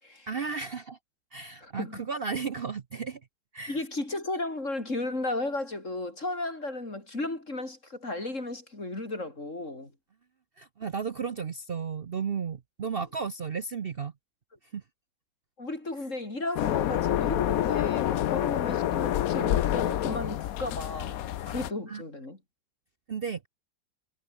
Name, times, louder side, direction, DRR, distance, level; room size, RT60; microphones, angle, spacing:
voice 1, 0.3-1.0 1.3-3.2 3.5-3.8 10.6-14.1 14.7-14.8 21.9-22.0 23.1-23.5, right 6 dB, 85° right, 0.5 m, -34 dB
voice 2, 1.6-2.0 3.7-9.9 15.6-22.4, left 2 dB, 35° left, 5.6 m, -34 dB
sound 1, 16.6-21.7, left 12 dB, 65° left, 0.9 m, -27 dB
omnidirectional pair, 2.2 m